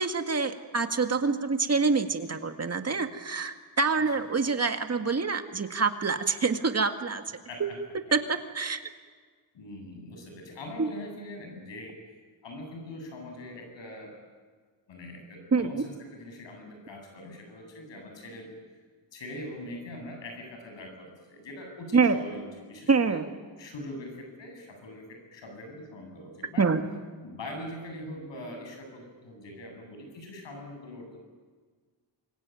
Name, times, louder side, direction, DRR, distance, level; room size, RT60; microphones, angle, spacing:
voice 1, 0.0-7.2 8.1-8.8 10.8-10.9 15.5-15.8 21.9-22.2 22.9-23.3 26.6-26.8, right 4 dB, 35° right, 7 dB, 2.0 m, -26 dB
voice 2, 7.5-7.8 9.5-11.9 12.4-14.1 14.9-18.5 19.1-23.2 23.6-26.7 27.2-31.2, left 1 dB, 85° left, 3 dB, 7.9 m, -42 dB
26.5 x 23.0 x 9.4 m, 1.5 s
cardioid pair, 105°, 43 cm